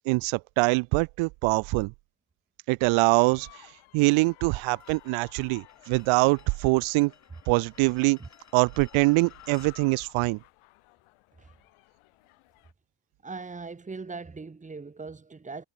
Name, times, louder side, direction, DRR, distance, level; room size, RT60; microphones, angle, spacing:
voice 1, 0.0-1.9 2.7-3.7 3.9-7.1 7.5-8.2 8.5-10.4, right 25 dB, 80° right, 0.5 m, -24 dB
sound 1, 2.9-12.7, left 22 dB, 90° left, 2.2 m, -55 dB
sound 2, 4.8-9.8, left 6 dB, 35° left, 5.3 m, -57 dB
voice 2, 13.2-15.6, right 4 dB, 15° right, 1.3 m, -40 dB
cardioid pair, 105°, 48 cm